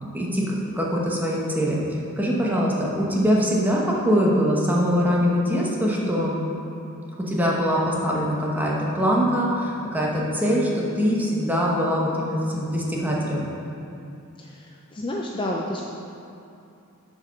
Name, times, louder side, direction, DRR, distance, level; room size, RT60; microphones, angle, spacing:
voice 1, 0.0-6.3 7.2-13.5, equal, 10° right, -4 dB, 1.0 m, -23 dB
voice 2, 14.4-15.8, left 1 dB, 25° left, -2 dB, 0.4 m, -30 dB
7.6 x 4.9 x 5.7 m, 2.7 s
head